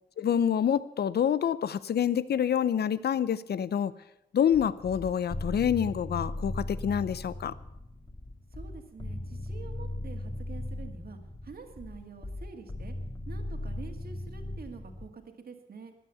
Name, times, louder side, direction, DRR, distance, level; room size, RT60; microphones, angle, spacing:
voice 1, 0.2-3.9 4.3-7.5, left 8 dB, 65° left, 17 dB, 0.7 m, -27 dB
sound 1, 4.5-15.1, left 1 dB, 25° left, 2.0 m, -38 dB
voice 2, 8.5-13.0 13.3-15.9, right 5 dB, 60° right, 4 dB, 2.2 m, -47 dB
14.5 x 10.0 x 6.9 m, 0.84 s
cardioid pair, 65°, 18 cm